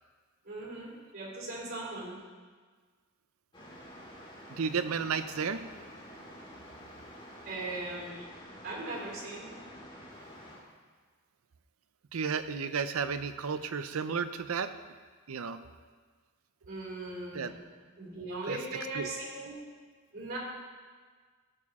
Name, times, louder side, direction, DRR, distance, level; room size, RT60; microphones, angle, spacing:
voice 1, 0.4-2.2 7.4-8.3 8.6-9.6 16.7-17.6 18.0-19.6 20.1-20.4, right 2 dB, 50° right, -3 dB, 3.5 m, -39 dB
sound 1, 3.5-10.6, equal, 25° left, 1.9 m, -49 dB
voice 2, 4.5-5.6 12.1-14.7 15.3-15.6 17.3-17.5 18.5-18.6 18.9-19.1, right 6 dB, 90° right, 11 dB, 0.6 m, -32 dB
15.0 x 6.8 x 3.6 m, 1.5 s
head